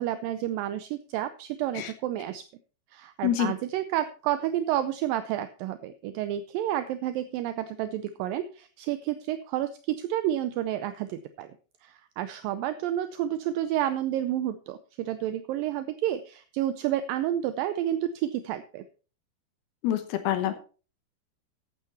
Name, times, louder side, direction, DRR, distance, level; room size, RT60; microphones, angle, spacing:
voice 1, 0.0-2.4 2.9-11.5 11.8-18.8, right 12 dB, 80° right, 11 dB, 2.2 m, -30 dB
voice 2, 3.2-3.5 19.8-20.5, left 11 dB, 80° left, 8 dB, 3.0 m, -26 dB
12.0 x 8.7 x 4.2 m, 0.36 s
omnidirectional pair, 4.4 m